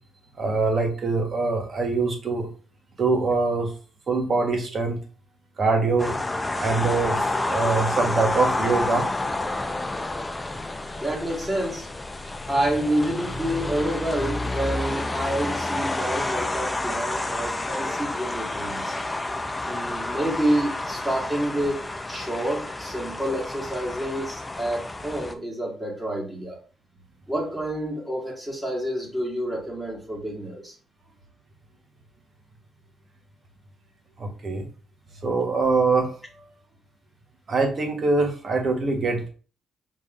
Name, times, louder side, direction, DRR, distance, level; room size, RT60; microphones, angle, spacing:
voice 1, 0.4-2.5 3.0-3.7 4.1-5.0 5.6-6.1 6.5-9.1 34.2-34.6 35.2-36.1 37.5-39.3, right 3 dB, 45° right, 3 dB, 1.4 m, -23 dB
sound 1, 6.0-25.3, left 2 dB, 15° left, 0.5 m, -29 dB
voice 2, 11.0-11.9 12.5-19.0 19.6-26.6 27.3-30.7, right 1 dB, 10° right, -2 dB, 2.0 m, -28 dB
5.4 x 3.5 x 2.6 m, 0.38 s
cardioid pair, 90°, 0 cm